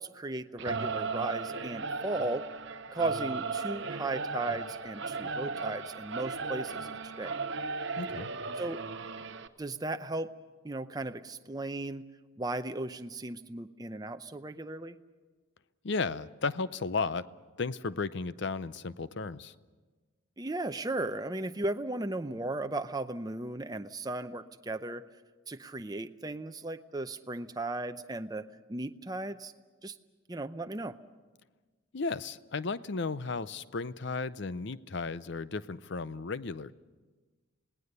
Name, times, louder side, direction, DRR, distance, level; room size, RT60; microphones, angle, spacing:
voice 1, 0.0-2.5 2.9-6.9 7.2-7.4 8.6-8.8 9.6-10.3 10.6-12.0 12.4-15.0 20.4-25.0 25.5-28.4 28.7-29.5 29.8-29.9 30.3-31.0, right 2 dB, 20° right, 8 dB, 0.6 m, -36 dB
Singing / Musical instrument, 0.6-9.5, right 4 dB, 55° right, 0.8 m, -36 dB
voice 2, 8.0-8.3 15.8-17.3 17.6-19.5 31.9-36.7, left 4 dB, 55° left, 15 dB, 0.6 m, -34 dB
27.5 x 18.5 x 6.7 m, 1.3 s
head